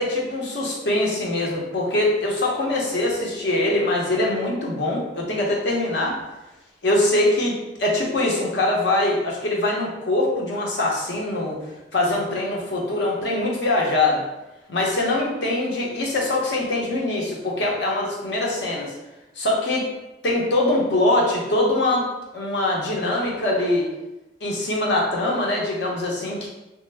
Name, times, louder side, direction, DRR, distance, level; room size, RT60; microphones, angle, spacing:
voice 1, 0.0-6.2 6.8-11.6 11.9-14.2 14.7-18.9 19.4-19.9 20.2-22.1 22.3-23.9 24.4-26.5, left 2 dB, 70° left, -2 dB, 0.8 m, -23 dB
3.1 x 2.0 x 3.3 m, 1.0 s
head